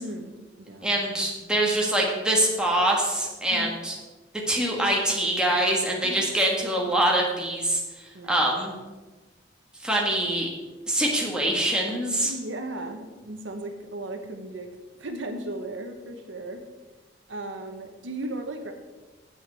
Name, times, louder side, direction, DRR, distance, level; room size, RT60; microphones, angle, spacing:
voice 1, 0.0-0.9 3.5-3.7 6.0-6.2 8.1-8.5 12.2-14.7 15.0-16.6 17.3-18.7, right 1 dB, 75° right, 5 dB, 1.0 m, -36 dB
voice 2, 0.8-3.9 4.3-8.7 9.8-10.5 10.9-12.3, right 1 dB, 5° right, -2 dB, 1.6 m, -24 dB
8.1 x 6.4 x 6.8 m, 1.2 s
head